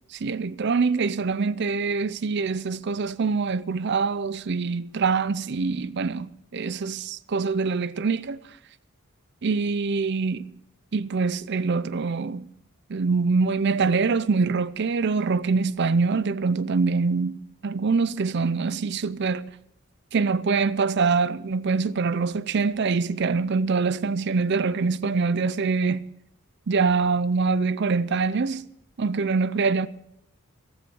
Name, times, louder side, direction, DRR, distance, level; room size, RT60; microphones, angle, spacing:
voice 1, 0.1-8.4 9.4-10.5 10.9-12.5 12.9-19.5 20.1-26.1 26.7-28.7 29.0-29.9, right 4 dB, 50° right, 0.5 m, -24 dB
15.0 x 13.5 x 6.1 m
head